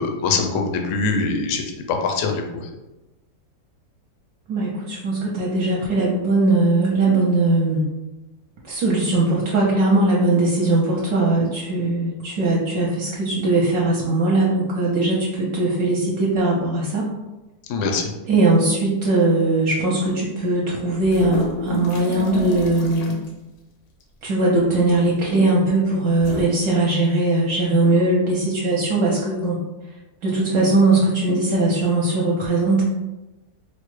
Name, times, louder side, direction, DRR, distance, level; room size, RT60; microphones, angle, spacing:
voice 1, 0.0-2.7 17.7-18.1, left 4 dB, 70° left, 3 dB, 0.7 m, -23 dB
voice 2, 4.5-7.8 8.7-17.1 18.3-23.2 24.2-29.6 30.2-32.8, right 2 dB, 70° right, -4 dB, 1.1 m, -20 dB
sound 1, 21.0-23.3 24.6-24.9 26.1-26.4, left 1 dB, 90° left, 1.3 m, -30 dB
4.5 x 2.1 x 3.1 m, 1.0 s
omnidirectional pair, 1.9 m